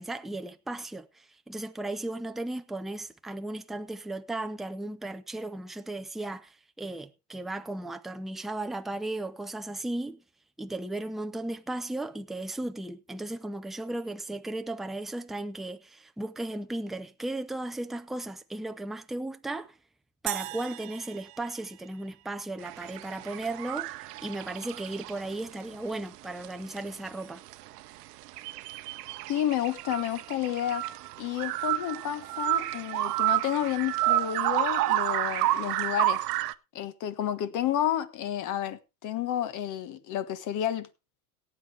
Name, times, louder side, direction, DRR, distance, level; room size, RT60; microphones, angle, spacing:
voice 1, 0.0-10.2 10.6-19.7 20.2-27.4, right 2 dB, ahead, 0.5 m, -36 dB
sound 1, 20.3-22.7, right 24 dB, 55° right, 0.6 m, -39 dB
sound 2, 22.6-25.4 25.7-25.8 26.2-26.5 26.8-26.9 27.1-27.2 27.5-36.5, right 16 dB, 85° right, 0.9 m, -30 dB
voice 2, 29.3-30.9 31.2-36.2 36.7-40.9, left 11 dB, 40° left, 1.4 m, -31 dB
17.5 x 8.5 x 3.4 m
supercardioid pair, 130°, 46 cm